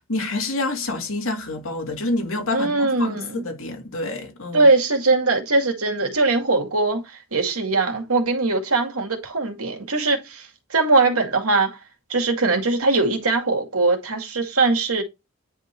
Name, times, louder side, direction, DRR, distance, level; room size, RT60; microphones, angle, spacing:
voice 1, 0.1-4.7, left 2 dB, 65° left, 2.3 m, -28 dB
voice 2, 2.5-3.4 4.5-11.8 12.1-15.0, right 3 dB, 85° right, 2.2 m, -21 dB
9.9 x 3.8 x 4.5 m
head